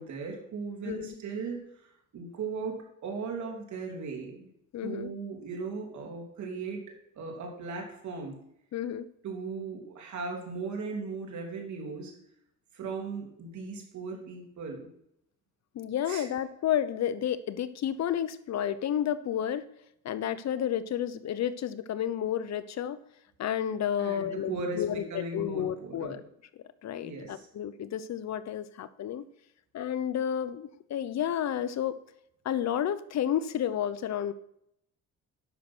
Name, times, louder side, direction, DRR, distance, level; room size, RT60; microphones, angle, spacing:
voice 1, 0.0-4.5 4.8-6.8 7.1-8.4 9.2-12.1 12.7-14.9 16.1-16.3 24.0-26.2 27.0-27.5, right 4 dB, 70° right, 1 dB, 3.1 m, -37 dB
voice 2, 4.7-5.1 8.7-9.1 15.7-19.7 20.0-23.0 23.4-26.2 26.8-29.2 29.7-32.0 32.4-34.3, left 10 dB, 60° left, 15 dB, 0.8 m, -31 dB
10.0 x 6.5 x 6.1 m, 0.76 s
cardioid pair, 90°, 30 cm